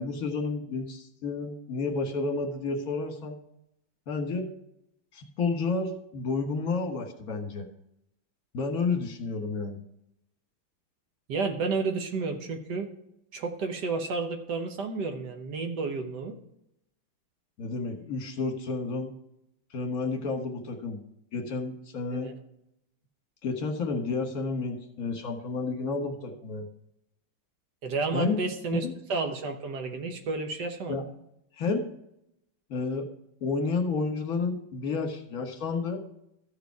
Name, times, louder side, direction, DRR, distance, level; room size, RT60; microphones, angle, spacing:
voice 1, 0.0-3.4 4.1-4.4 5.1-7.7 8.5-9.8 17.6-19.1 19.7-21.0 21.3-22.3 23.4-26.7 28.1-28.4 28.8-28.9 30.9-31.0 31.6-31.8 32.7-33.1 33.4-36.0, left 4 dB, 50° left, 3 dB, 1.7 m, -31 dB
voice 2, 11.3-12.9 13.3-16.4 22.2-22.3 27.8-31.0, right 4 dB, 60° right, 5 dB, 1.5 m, -31 dB
14.5 x 4.9 x 4.6 m, 0.81 s
omnidirectional pair, 2.2 m